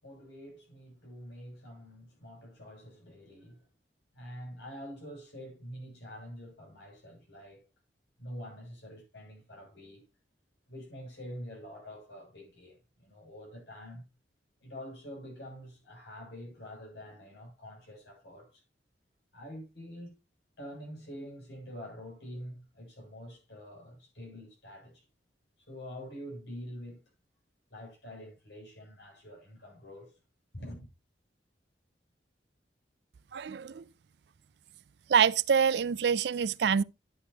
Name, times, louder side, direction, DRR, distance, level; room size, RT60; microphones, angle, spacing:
voice 1, 0.0-3.7 4.1-7.6 8.2-10.0 10.7-14.0 14.6-18.6 19.3-20.2 20.6-25.1 25.6-27.0 27.7-30.1 30.5-30.9, equal, 80° left, 7.4 m, -46 dB
voice 2, 33.3-33.8 35.1-36.8, right 7 dB, 70° right, 0.4 m, -26 dB
11.5 x 8.4 x 2.9 m
head